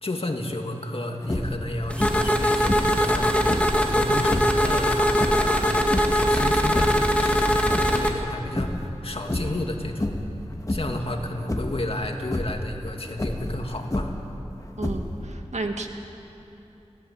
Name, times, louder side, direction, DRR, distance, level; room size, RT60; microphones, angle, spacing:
voice 1, 0.0-3.5 3.9-5.7 6.0-10.1 10.7-14.1, left 1 dB, 55° left, 3 dB, 2.4 m, -32 dB
sound 1, 1.2-1.6 2.0-2.4 2.6-3.8 4.2-4.6 5.1-6.3 6.6-7.1 7.5-8.3 8.6-8.9 9.2-9.6 10.0-10.3 10.6-11.0 11.5-11.8 12.2-12.6 13.1-14.3 14.8-15.3, left 1 dB, 30° left, 2.1 m, -29 dB
sound 2, 1.9-8.1, equal, 10° left, 2.2 m, -21 dB
voice 2, 14.8-15.9, right 2 dB, 85° right, 4 dB, 2.0 m, -32 dB
30.0 x 14.5 x 8.6 m, 2.8 s
wide cardioid pair, 65°, 11 cm